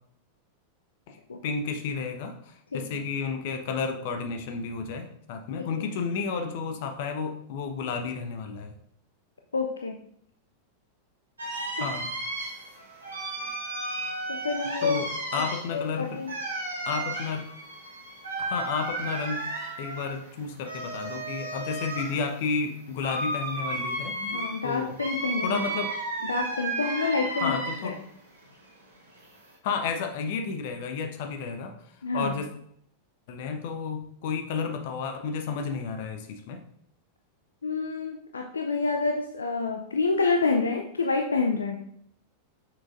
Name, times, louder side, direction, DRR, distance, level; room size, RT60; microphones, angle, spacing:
voice 1, 1.1-8.7 11.8-12.1 14.8-16.2 16.8-17.5 18.4-19.5 19.8-24.3 24.6-24.9 25.4-25.9 27.4-28.0 29.6-31.7 32.1-32.5 33.3-36.6, left 5 dB, 50° left, 6 dB, 0.9 m, -32 dB
voice 2, 2.7-3.0 5.6-5.8 9.5-10.0 11.8-11.9 14.3-15.0 15.7-16.3 24.3-25.6 26.2-27.6 27.8-28.0 32.0-32.3 37.6-41.7, left 4 dB, 75° left, 3 dB, 0.5 m, -28 dB
sound 1, 11.4-28.0 28.4-29.5, right 2 dB, 75° right, 1.8 m, -34 dB
7.5 x 6.4 x 2.5 m, 0.70 s
figure-of-eight pair, 90°, 0 cm